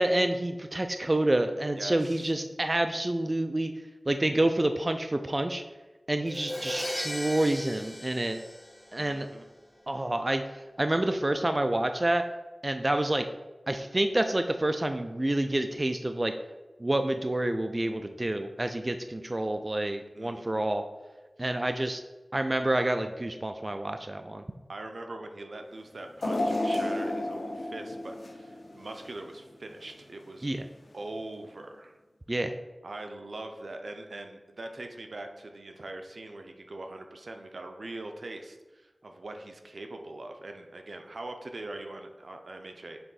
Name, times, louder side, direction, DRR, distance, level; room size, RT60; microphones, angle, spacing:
voice 1, 0.0-3.7 4.1-5.6 6.1-8.4 8.9-9.3 9.9-12.2 12.6-13.3 13.7-16.3 16.8-20.8 21.4-22.0 22.3-24.4 30.4-30.6 32.3-32.5, right 1 dB, 35° right, 7 dB, 0.4 m, -28 dB
voice 2, 1.8-2.3 9.0-9.5 20.1-20.7 24.7-30.5 30.9-32.0 32.8-43.0, right 2 dB, 75° right, 5 dB, 0.6 m, -42 dB
Crash cymbal, 6.3-9.2, left 1 dB, 15° left, 0.6 m, -37 dB
sound 1, 26.2-29.3 29.8-29.9 30.9-31.0, left 1 dB, 80° left, 0.8 m, -31 dB
6.9 x 3.6 x 4.0 m, 1.2 s
wide cardioid pair, 60°, 0 cm